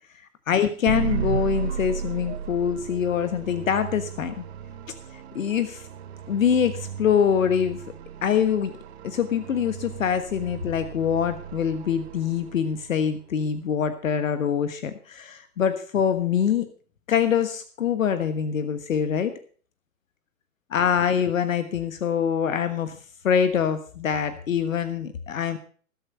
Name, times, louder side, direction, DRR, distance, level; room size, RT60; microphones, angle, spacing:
voice 1, 0.5-4.4 5.1-5.9 6.3-7.8 8.2-8.7 9.0-16.7 17.1-19.3 20.7-23.0 23.2-25.6, left 8 dB, 65° left, 11 dB, 1.4 m, -24 dB
sound 1, 0.9-13.0, right 8 dB, 50° right, 1.3 m, -35 dB
17.5 x 7.9 x 5.5 m, 0.43 s
figure-of-eight pair, 125°, 43 cm